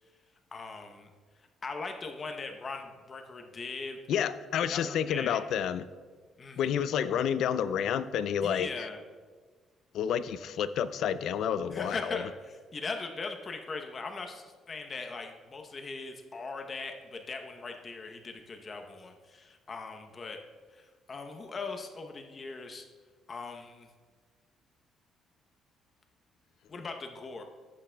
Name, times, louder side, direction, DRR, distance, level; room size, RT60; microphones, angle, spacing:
voice 1, 0.5-1.1 1.6-4.0 4.6-5.4 6.4-6.7 8.4-9.0 11.7-20.4 20.7-22.9 23.3-23.9 26.7-27.4, left 4 dB, 30° left, 4 dB, 0.8 m, -40 dB
voice 2, 4.1-5.8 6.6-8.7 9.9-12.2, left 8 dB, 70° left, 14 dB, 0.3 m, -29 dB
13.5 x 8.5 x 2.2 m, 1.5 s
cardioid pair, 135°, 0 cm